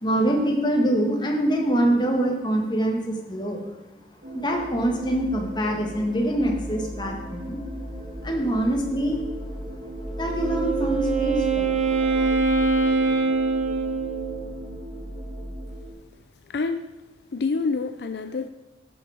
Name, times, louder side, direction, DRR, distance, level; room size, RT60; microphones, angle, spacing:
voice 1, 0.0-3.7 4.3-7.6 8.2-9.2 10.2-12.3, right 1 dB, 25° left, 1 dB, 1.6 m, -24 dB
sound 1, 4.2-15.9, equal, 75° right, 3.0 m, -35 dB
Wind instrument woodwind instrument, 10.2-14.5, right 4 dB, 40° right, 1.4 m, -24 dB
voice 2, 16.5-16.9 17.3-18.5, left 4 dB, 65° left, 9 dB, 0.5 m, -27 dB
11.5 x 7.0 x 4.9 m, 1.1 s
head